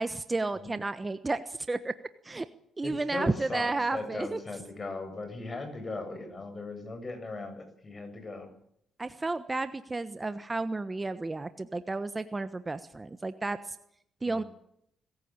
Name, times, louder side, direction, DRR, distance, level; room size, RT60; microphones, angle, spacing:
voice 1, 0.0-1.9 2.2-2.5 2.8-4.4 9.0-13.8 14.2-14.4, right 3 dB, 25° right, 12 dB, 1.2 m, -32 dB
voice 2, 2.8-8.5 14.3-14.5, left 2 dB, 35° left, 7 dB, 7.8 m, -38 dB
24.5 x 15.0 x 8.8 m, 0.72 s
cardioid pair, 70°, 0 cm